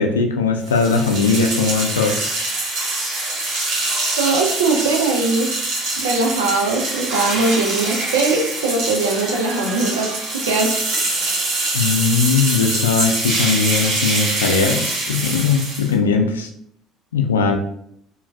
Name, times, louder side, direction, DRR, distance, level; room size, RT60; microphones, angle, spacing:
voice 1, 0.0-2.3 11.7-16.5 17.1-17.6, left 5 dB, 85° left, 5 dB, 0.3 m, -19 dB
sound 1, 0.7-15.9, right 2 dB, 65° right, 1.2 m, -24 dB
voice 2, 4.2-5.5 6.0-10.9, right 3 dB, 80° right, 2 dB, 0.4 m, -20 dB
3.6 x 2.2 x 2.3 m, 0.69 s
figure-of-eight pair, 60°, 0 cm